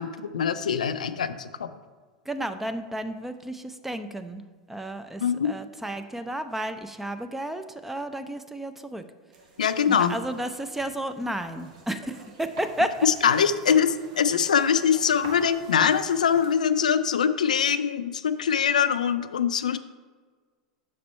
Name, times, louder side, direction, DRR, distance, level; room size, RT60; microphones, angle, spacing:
voice 1, 0.0-1.7 5.2-5.5 9.6-10.2 13.0-19.8, left 7 dB, 80° left, 12 dB, 0.3 m, -23 dB
voice 2, 2.3-4.4 4.7-9.0 9.9-13.0, right 1 dB, 5° right, 9 dB, 0.4 m, -32 dB
sound 1, 9.3-16.6, right 3 dB, 65° right, 1.0 m, -48 dB
6.4 x 4.2 x 4.3 m, 1.5 s
hypercardioid pair, 90°, 4 cm